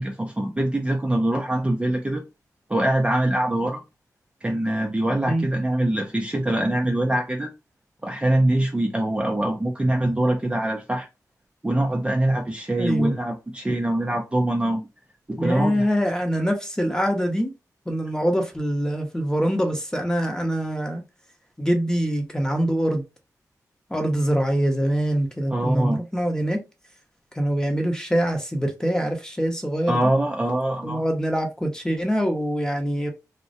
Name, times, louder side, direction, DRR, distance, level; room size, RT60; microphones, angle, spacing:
voice 1, 0.0-2.2 2.7-3.8 4.4-7.5 8.0-11.1 11.6-14.8 15.3-15.9 25.5-26.0 29.9-31.0, right 1 dB, 15° right, 0.5 m, -23 dB
voice 2, 12.8-13.1 15.4-17.5 17.9-21.0 21.6-23.0 23.9-26.6 27.3-30.1 30.8-33.1, equal, 10° left, 0.8 m, -24 dB
2.2 x 2.1 x 2.6 m
cardioid pair, 50°, 7 cm